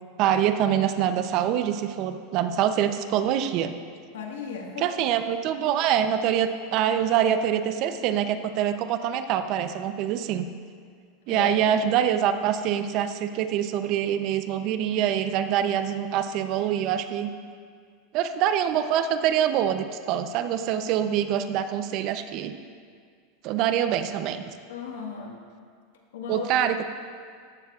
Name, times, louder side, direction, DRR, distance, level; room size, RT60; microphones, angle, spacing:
voice 1, 0.2-3.7 4.8-10.5 11.3-17.3 18.1-22.5 23.4-24.4 26.3-26.8, right 9 dB, 50° right, 9 dB, 0.7 m, -25 dB
voice 2, 4.1-5.1 11.3-11.7 24.7-25.4 26.1-26.7, left 5 dB, 85° left, 0 dB, 1.7 m, -36 dB
14.0 x 12.0 x 2.5 m, 2.1 s
supercardioid pair, 125°, 0 cm